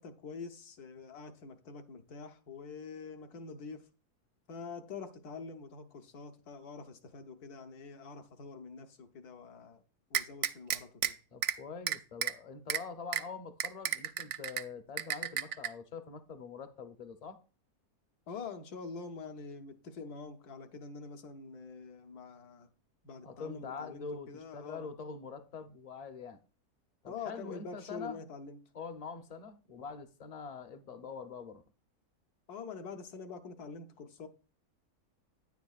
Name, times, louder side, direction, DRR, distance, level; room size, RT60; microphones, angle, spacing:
voice 1, 0.0-3.9 4.5-9.8 10.1-11.1 18.3-22.7 23.0-24.9 27.1-28.6 32.5-34.3, left 5 dB, 80° left, 1.5 m, -45 dB
sound 1, 10.1-11.1 11.4-11.6 11.9-12.3 12.7-12.8 13.1-13.2 13.6-14.6 15.0-15.7, right 10 dB, 70° right, 0.7 m, -31 dB
voice 2, 11.3-17.4 23.2-26.4 27.0-28.2 28.7-31.6, left 5 dB, 45° left, 0.5 m, -44 dB
9.9 x 9.2 x 2.4 m
omnidirectional pair, 1.6 m